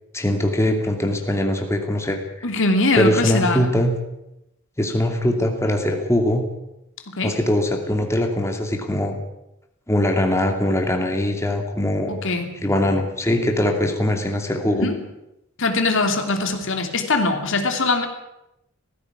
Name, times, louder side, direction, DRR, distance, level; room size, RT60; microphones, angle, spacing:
voice 1, 0.1-2.5 3.0-3.9 4.8-6.4 7.2-9.2 9.9-12.1 12.6-14.9, left 1 dB, 15° left, 3 dB, 2.7 m, -21 dB
voice 2, 2.4-3.6 7.1-7.4 12.1-12.6 14.8-15.0 15.6-18.1, left 3 dB, 60° left, 5 dB, 2.8 m, -22 dB
18.0 x 15.5 x 9.7 m, 0.88 s
head